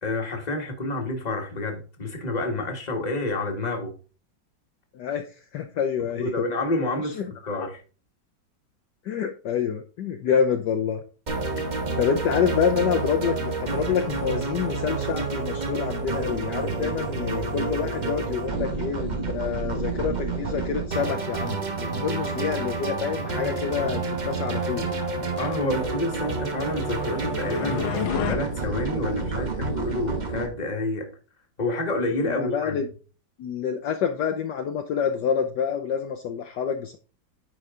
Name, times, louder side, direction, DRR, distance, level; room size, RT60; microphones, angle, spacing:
voice 1, 0.0-3.9 6.2-7.2 7.5-7.8 11.5-11.7 25.4-27.9 28.3-31.1 31.6-32.8, left 2 dB, 20° left, 1.5 m, -28 dB
voice 2, 4.9-5.3 5.5-6.3 7.0-7.3 7.5-7.7 9.0-11.0 12.0-24.9 32.2-32.9 33.4-37.0, left 7 dB, 70° left, 1.2 m, -27 dB
sound 1, 11.3-30.5, right 4 dB, 35° right, 0.8 m, -29 dB
sound 2, 26.4-28.4, left 10 dB, 85° left, 1.8 m, -31 dB
9.8 x 4.6 x 3.6 m
omnidirectional pair, 2.2 m